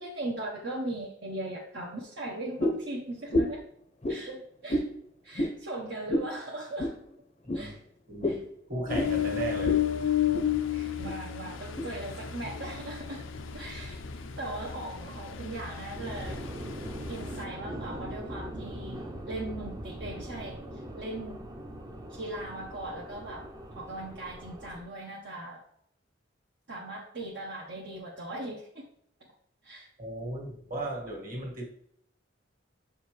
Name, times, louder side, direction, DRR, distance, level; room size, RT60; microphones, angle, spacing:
voice 1, 0.0-3.6 4.1-4.8 5.2-6.9 7.5-7.8 8.2-8.4 10.7-13.2 13.5-16.4 17.1-21.4 22.1-23.5 23.7-25.6 26.7-28.8 29.6-29.9, right 2 dB, 60° right, -3 dB, 1.0 m, -39 dB
sound 1, 2.6-2.9 3.3-3.6 4.0-4.2 4.7-4.9 5.3-5.6 6.1-6.3 6.8-7.0 7.5-7.6 8.2-8.4 8.9-9.1 9.6-9.8 10.1-10.5 11.0-11.1 11.8-11.9, left 1 dB, 35° left, 0.6 m, -29 dB
voice 2, 8.1-9.8 30.0-31.6, right 2 dB, 45° right, -1 dB, 1.8 m, -36 dB
Ocean, 8.9-17.5, left 9 dB, 85° left, 0.6 m, -32 dB
sound 2, 15.9-24.8, equal, 20° right, 0.6 m, -41 dB
6.9 x 5.0 x 3.2 m, 0.69 s
head